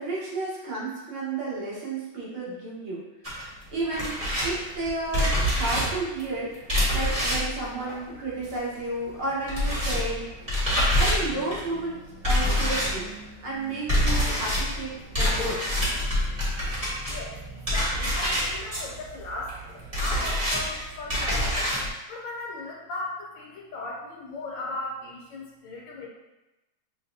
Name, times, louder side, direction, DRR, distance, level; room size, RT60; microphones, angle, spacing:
voice 1, 0.0-3.0 3.7-6.6 6.9-10.3 11.0-12.0 12.2-13.1 13.4-15.6, right 2 dB, 80° right, -6 dB, 2.1 m, -32 dB
sound 1, 3.2-8.8 9.0-21.9, equal, 20° right, 1.0 m, -27 dB
voice 2, 17.1-21.7 22.1-26.1, left 2 dB, 70° left, -2 dB, 1.4 m, -37 dB
6.3 x 2.2 x 2.6 m, 0.99 s
omnidirectional pair, 2.3 m